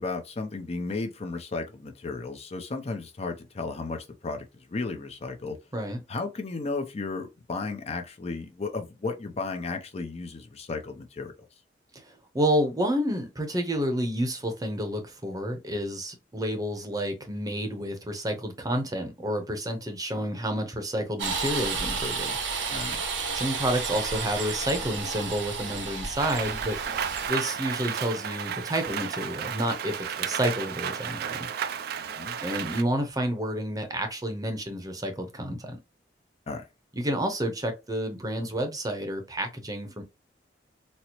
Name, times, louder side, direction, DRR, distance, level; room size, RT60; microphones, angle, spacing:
voice 1, 0.0-5.6 6.1-11.3 22.7-23.0 32.0-32.4 36.5-36.6, left 3 dB, 35° left, 0.5 m, -34 dB
voice 2, 11.9-22.4 23.3-26.8 27.3-31.5 32.4-35.8 36.9-40.0, equal, 20° right, 0.7 m, -30 dB
sound 1, 21.2-27.3, right 4 dB, 85° right, 0.8 m, -32 dB
Rain, 26.2-32.8, right 8 dB, 60° right, 0.3 m, -33 dB
4.2 x 2.0 x 2.9 m
head